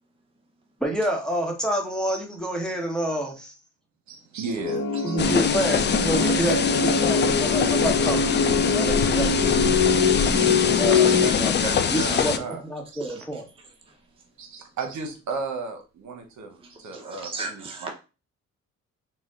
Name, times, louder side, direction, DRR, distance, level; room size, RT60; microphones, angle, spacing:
voice 1, 0.8-3.5 5.0-9.7 10.8-11.5 11.9-13.5, right 1 dB, ahead, 0 dB, 1.1 m, -28 dB
voice 2, 4.1-5.2 10.3-10.5 11.1-12.6 12.9-13.0 14.4-17.9, right 4 dB, 70° right, 5 dB, 0.9 m, -35 dB
sound 1, 4.6-11.3, left 4 dB, 60° left, 0.9 m, -23 dB
sound 2, 5.2-12.4, left 7 dB, 35° left, 0.4 m, -24 dB
sound 3, 6.5-11.2, equal, 45° right, 1.2 m, -39 dB
voice 3, 16.9-17.9, right 3 dB, 20° right, 2 dB, 0.8 m, -35 dB
4.1 x 2.2 x 3.7 m, 0.31 s
cardioid pair, 90°, 30 cm